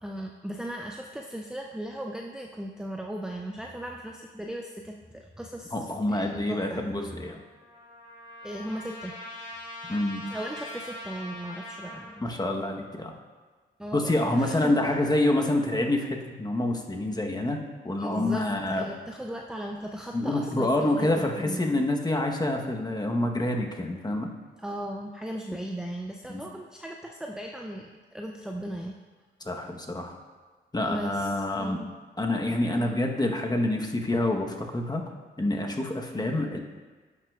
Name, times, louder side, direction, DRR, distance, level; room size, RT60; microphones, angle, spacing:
voice 1, 0.0-5.7 6.1-6.8 8.4-9.1 10.3-12.2 13.8-14.7 18.0-18.4 18.7-21.8 24.6-29.0 30.8-31.9 32.8-32.9 36.1-36.3, right 1 dB, 5° right, 1 dB, 0.5 m, -37 dB
voice 2, 5.7-7.4 9.9-10.2 12.2-13.1 13.9-18.8 20.1-24.3 26.3-26.4 29.4-30.1 30.7-31.8 32.2-35.0 35.4-36.6, left 1 dB, 20° left, 2 dB, 1.1 m, -27 dB
Trumpet, 7.0-12.1, left 1 dB, 65° left, 1.9 m, -42 dB
10.5 x 5.8 x 2.4 m, 1.4 s
supercardioid pair, 55°, 21 cm